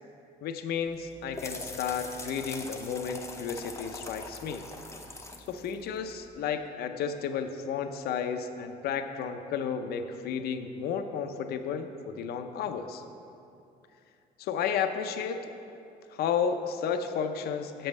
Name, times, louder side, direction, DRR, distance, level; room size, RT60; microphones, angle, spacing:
voice 1, 0.4-4.7 5.5-13.0 14.4-15.4 16.1-17.9, left 7 dB, 70° left, 7 dB, 0.6 m, -32 dB
sound 1, 0.9-6.5, left 2 dB, 15° left, 0.7 m, -43 dB
6.9 x 5.4 x 7.2 m, 2.7 s
cardioid pair, 110°, 17 cm